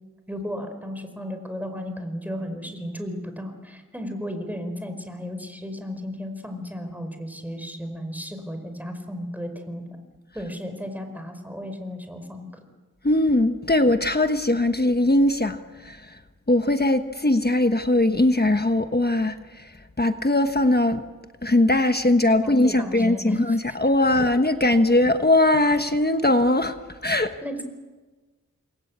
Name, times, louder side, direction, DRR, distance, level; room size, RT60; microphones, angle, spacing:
voice 1, 0.3-9.8 10.3-12.5 22.4-23.6 24.2-24.3 27.4-27.6, equal, 5° right, 6 dB, 4.9 m, -34 dB
voice 2, 13.0-16.2 16.5-19.7 20.0-21.0 21.4-26.7 27.0-27.3, left 1 dB, 30° left, 8 dB, 1.3 m, -20 dB
29.0 x 21.5 x 8.7 m, 1.3 s
wide cardioid pair, 70°, 32 cm